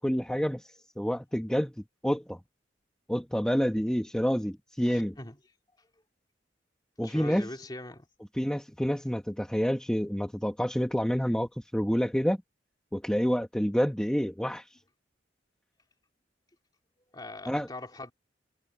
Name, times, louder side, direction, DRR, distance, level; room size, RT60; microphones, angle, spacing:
voice 1, 0.0-1.7 2.0-2.4 3.1-5.2 7.0-7.5 8.3-12.4 12.9-14.7 17.5-17.7, equal, 5° left, 1.1 m, -28 dB
voice 2, 4.8-5.4 7.0-8.1 17.1-18.1, left 2 dB, 20° left, 2.5 m, -41 dB
head